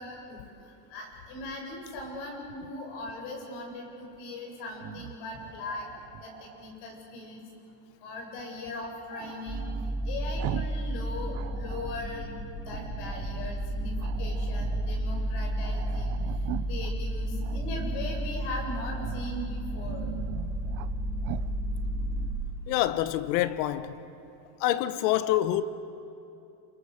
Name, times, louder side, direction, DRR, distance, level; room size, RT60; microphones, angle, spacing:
voice 1, 0.0-5.8 6.2-6.3 6.6-7.4 8.0-9.7 10.0-20.1, left 2 dB, 60° left, 7.8 m, -39 dB
Growling, 4.7-6.7 9.1-10.9 11.2-12.1 12.7-13.6 14.0-15.0 15.3-15.4 15.6-16.9 17.4-18.2 18.9-19.3 19.7-20.9 21.2-21.5, right 18 dB, 50° right, 0.6 m, -41 dB
sound 1, 9.5-22.3, right 1 dB, 5° right, 1.9 m, -32 dB
voice 2, 22.7-23.9 24.6-25.6, left 13 dB, 85° left, 1.2 m, -26 dB
28.5 x 27.0 x 6.6 m
cardioid pair, 160°, 47 cm